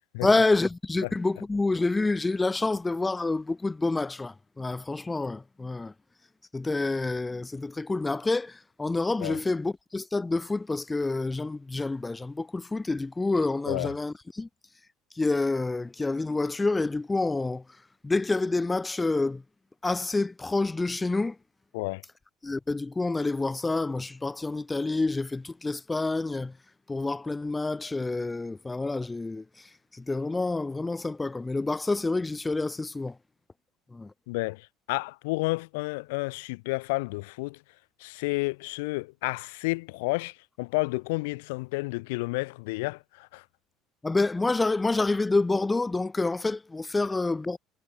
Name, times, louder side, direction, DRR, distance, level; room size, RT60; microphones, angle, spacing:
voice 1, 0.2-5.9 6.5-14.5 15.2-17.6 18.0-19.4 19.8-21.4 22.4-26.6 26.9-33.2 33.9-34.1 44.0-47.6, left 3 dB, 15° left, 2.0 m, -28 dB
voice 2, 34.3-37.6 38.0-43.4, left 25 dB, 65° left, 2.1 m, -31 dB
figure-of-eight pair, 60°, 0 cm